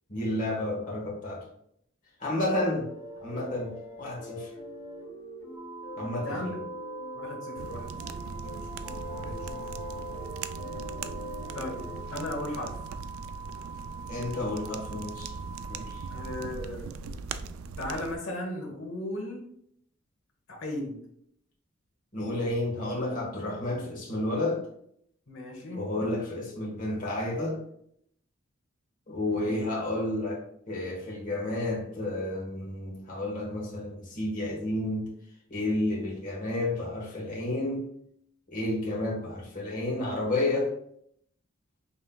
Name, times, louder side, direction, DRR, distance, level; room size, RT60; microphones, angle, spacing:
voice 1, 0.1-1.4 2.2-2.9 3.2-3.7 4.0-4.5 6.0-6.6 14.1-15.4 15.7-16.0 22.1-24.6 25.7-27.6 29.1-30.4 30.7-35.1 35.5-37.9 38.5-40.7, left 1 dB, 40° left, -4 dB, 1.3 m, -31 dB
sound 1, 2.8-7.7 8.0-12.0, equal, 25° left, 1.5 m, -42 dB
sound 2, 5.5-16.5, right 5 dB, 10° right, 0.5 m, -44 dB
voice 2, 6.2-6.6 7.1-8.9 9.1-9.7 11.5-11.8 12.1-12.8 16.1-16.9 17.8-19.4 20.5-21.0 25.3-25.8 29.3-29.6, left 1 dB, 75° left, 0 dB, 1.1 m, -37 dB
sound 3, 7.6-18.2, right 4 dB, 90° right, 0.3 m, -40 dB
5.4 x 3.1 x 2.3 m, 0.70 s
head